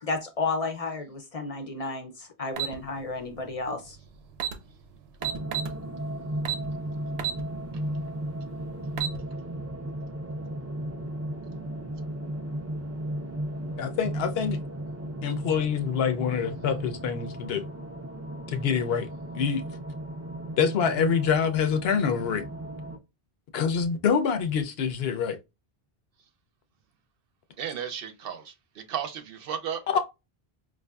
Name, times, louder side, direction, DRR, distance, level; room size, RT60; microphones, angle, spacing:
voice 1, 0.0-4.0, left 3 dB, 45° left, 0.5 m, -32 dB
sound 1, 2.6-2.8 4.0-4.1 4.3-4.6 5.2-5.7 6.4-6.7 7.2-7.4 7.9-8.0 8.7-9.2, right 10 dB, 90° right, 0.8 m, -29 dB
sound 2, 5.2-23.0, right 1 dB, 25° right, 0.3 m, -35 dB
voice 2, 13.8-14.6 15.2-17.6 18.5-19.1 19.3-19.6 20.6-22.5 23.5-25.4 29.9-30.0, left 7 dB, 75° left, 0.8 m, -26 dB
voice 3, 27.6-29.8, right 8 dB, 70° right, 0.8 m, -34 dB
4.6 x 2.5 x 2.2 m
omnidirectional pair, 1.0 m